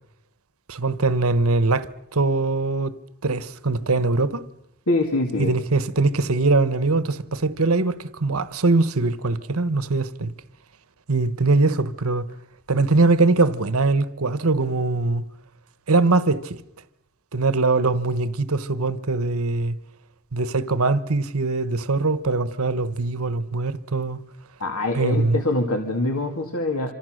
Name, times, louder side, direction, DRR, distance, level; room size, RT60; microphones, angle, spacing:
voice 1, 0.7-3.0 3.2-4.4 5.4-10.3 11.1-12.3 12.7-15.2 15.9-16.6 17.3-19.8 20.3-24.2 24.9-25.4, right 3 dB, 75° right, 1.1 m, -22 dB
voice 2, 4.9-5.5 24.6-26.9, left 2 dB, 80° left, 2.5 m, -24 dB
27.0 x 26.5 x 6.5 m
head